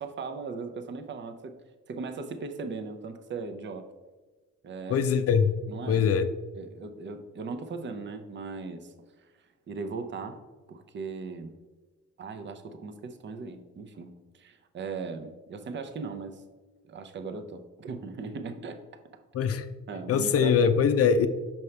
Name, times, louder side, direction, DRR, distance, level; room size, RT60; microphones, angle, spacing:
voice 1, 0.0-1.5 1.9-3.9 4.6-5.1 5.7-6.1 6.6-8.9 9.7-10.4 10.7-11.6 12.2-16.4 16.8-18.8 19.9-20.5, right 4 dB, 40° right, 8 dB, 0.6 m, -38 dB
voice 2, 4.9-5.6 5.9-6.3 19.3-19.7 20.1-21.3, left 6 dB, 50° left, 10 dB, 0.5 m, -22 dB
5.8 x 5.3 x 3.2 m, 1.3 s
cardioid pair, 90°, 30 cm